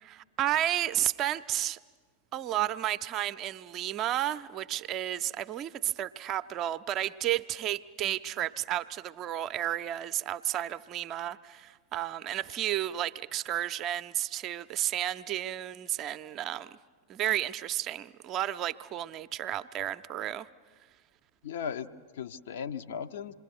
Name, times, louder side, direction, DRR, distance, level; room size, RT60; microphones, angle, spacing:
voice 1, 0.0-1.8 2.3-16.8 17.1-20.5, right 12 dB, 35° right, 0.6 m, -32 dB
voice 2, 21.4-23.3, left 7 dB, 55° left, 0.9 m, -37 dB
27.5 x 21.5 x 6.1 m
figure-of-eight pair, 90°, 0 cm